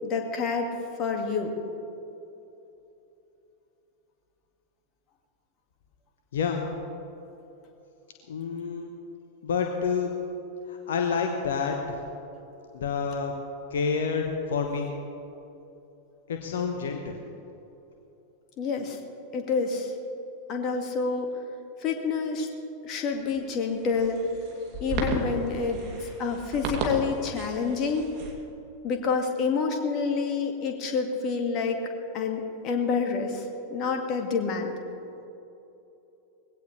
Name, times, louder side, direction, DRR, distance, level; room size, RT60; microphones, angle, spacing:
voice 1, 0.0-0.7 1.0-1.5 18.6-19.0 19.3-19.9 20.5-21.4 21.8-22.5 22.8-24.2 24.8-28.1 28.8-31.8 32.1-34.8, left 5 dB, 35° left, 3 dB, 2.0 m, -28 dB
voice 2, 6.3-6.6 8.3-8.9 9.4-10.1 10.7-12.0 12.7-13.3 13.7-14.9 16.3-17.2, left 5 dB, 60° left, 3 dB, 1.1 m, -28 dB
sound 1, 23.1-28.3, right 2 dB, 40° right, 2.7 m, -34 dB
20.0 x 16.5 x 3.3 m, 3.0 s
figure-of-eight pair, 90°, 0 cm